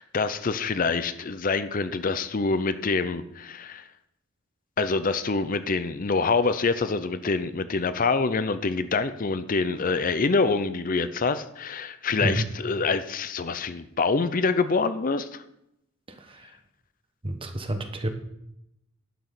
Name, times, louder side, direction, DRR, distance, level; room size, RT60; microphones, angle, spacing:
voice 1, 0.0-3.8 4.8-15.4, left 4 dB, 40° left, 12 dB, 0.5 m, -26 dB
voice 2, 16.2-16.5 17.2-18.1, right 1 dB, 25° right, 7 dB, 1.1 m, -29 dB
11.0 x 6.1 x 6.7 m, 0.81 s
head